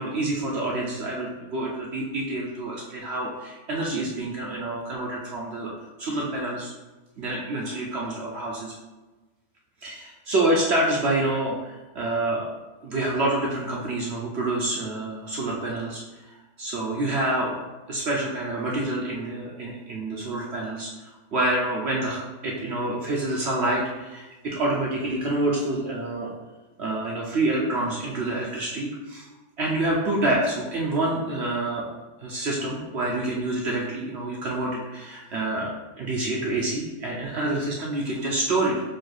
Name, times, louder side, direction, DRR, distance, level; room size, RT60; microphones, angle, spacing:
voice 1, 0.0-5.7 6.0-6.7 7.2-8.7 9.8-12.5 12.8-16.0 16.6-17.6 17.9-26.3 26.8-29.3 29.6-31.9 32.2-38.8, right 2 dB, 60° right, -3 dB, 0.7 m, -27 dB
4.5 x 2.3 x 4.6 m, 1.2 s
omnidirectional pair, 1.8 m